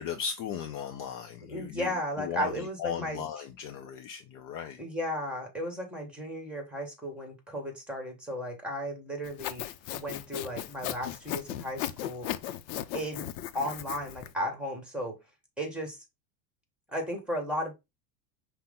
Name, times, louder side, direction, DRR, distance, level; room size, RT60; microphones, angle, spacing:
voice 1, 0.0-4.8, left 8 dB, 40° left, 0.5 m, -37 dB
voice 2, 1.4-3.2 4.8-9.7 9.9-12.3 12.9-13.3 13.5-15.2 15.6-16.0 16.9-17.7, equal, ahead, 1.4 m, -35 dB
Sawing, 9.2-14.3, left 12 dB, 85° left, 0.6 m, -37 dB
5.6 x 2.2 x 3.7 m
supercardioid pair, 120°, 49 cm